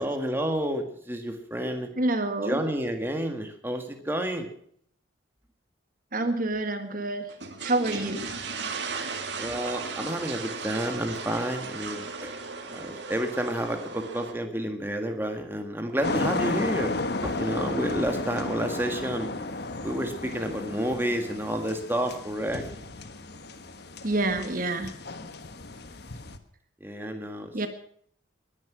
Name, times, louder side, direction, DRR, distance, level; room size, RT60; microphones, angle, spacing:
voice 1, 0.0-1.9 2.4-4.5 9.4-12.3 12.7-16.9 17.2-19.3 19.8-22.6 26.8-27.7, right 1 dB, 10° right, 4 dB, 1.6 m, -30 dB
voice 2, 2.0-2.6 6.1-7.2 7.6-8.3 24.0-24.9 27.5-27.7, right 2 dB, 45° right, 8 dB, 1.6 m, -27 dB
sound 1, 7.3-14.3, right 4 dB, 60° right, 2.3 m, -36 dB
sound 2, 16.0-26.4, left 2 dB, 55° left, 1.3 m, -33 dB
20.5 x 10.5 x 6.1 m, 0.64 s
head